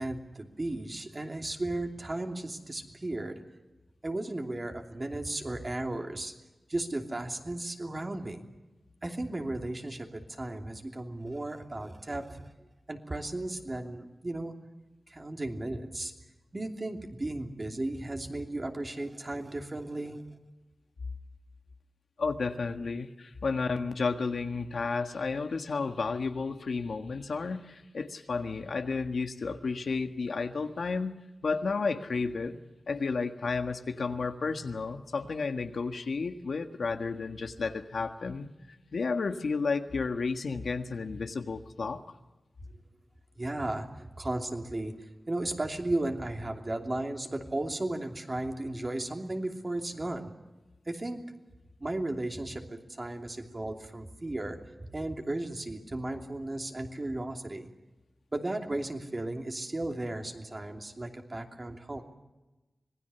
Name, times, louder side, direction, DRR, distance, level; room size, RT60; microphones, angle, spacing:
voice 1, 0.0-3.4 4.0-6.3 6.7-8.5 9.0-12.5 12.9-14.5 15.1-16.1 16.5-20.2 43.4-50.3 50.9-51.2 51.8-57.7 58.3-62.0, right 2 dB, 30° right, 3 dB, 2.8 m, -35 dB
voice 2, 22.2-31.2 31.4-32.6 32.9-38.5 38.9-42.0, left 4 dB, 85° left, 7 dB, 1.6 m, -32 dB
26.0 x 20.0 x 7.0 m, 1.1 s
wide cardioid pair, 100°, 0 cm